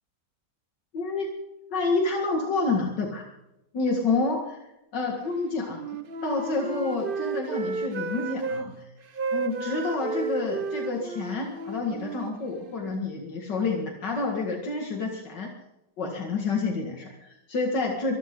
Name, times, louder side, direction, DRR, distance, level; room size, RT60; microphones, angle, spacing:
voice 1, 0.9-1.3 1.7-3.2 3.7-4.6 4.9-5.8 6.2-8.8 9.3-15.5 16.0-18.2, left 3 dB, 80° left, 1 dB, 2.6 m, -28 dB
Wind instrument woodwind instrument, 5.7-8.7 9.1-13.0, right 4 dB, 40° right, 0.9 m, -33 dB
24.5 x 13.5 x 3.8 m, 0.88 s
omnidirectional pair, 1.9 m